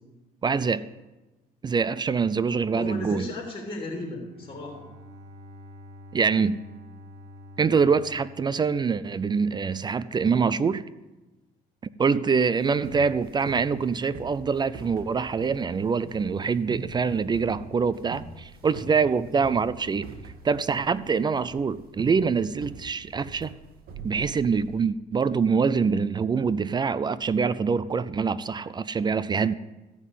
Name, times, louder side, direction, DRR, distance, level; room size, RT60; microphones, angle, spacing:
voice 1, 0.4-0.9 1.6-3.2 6.1-6.6 7.6-10.8 12.0-20.1 20.4-23.5 24.0-29.5, right 5 dB, 25° right, 0.4 m, -25 dB
voice 2, 2.8-4.9, left 2 dB, 30° left, 3.6 m, -35 dB
Bowed string instrument, 4.3-9.5, left 1 dB, 80° right, 1.4 m, -48 dB
sound 1, 12.5-24.8, right 4 dB, 60° right, 2.0 m, -42 dB
14.0 x 5.6 x 8.3 m
cardioid pair, 110°, 17 cm